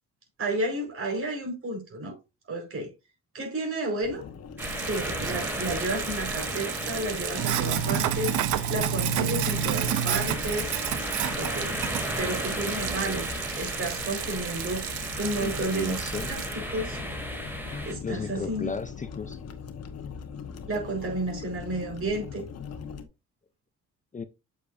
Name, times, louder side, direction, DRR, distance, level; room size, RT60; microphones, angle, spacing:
voice 1, 0.4-2.2 2.5-2.9 3.3-4.3 4.8-10.7 11.4-11.8 12.2-13.3 13.6-14.9 15.2-16.0 16.3-17.0 17.8-18.7 20.7-22.5, right 2 dB, 45° right, 4.8 m, -31 dB
sound 1, 4.0-23.0, left 6 dB, 55° left, 1.3 m, -42 dB
sound 2, 4.6-17.9, equal, 5° right, 2.7 m, -35 dB
Sink (filling or washing), 4.6-16.5, right 9 dB, 80° right, 0.8 m, -31 dB
voice 2, 15.4-16.3 17.7-19.4 24.1-24.2, left 4 dB, 25° left, 0.6 m, -35 dB
8.0 x 6.9 x 2.6 m
cardioid pair, 90°, 30 cm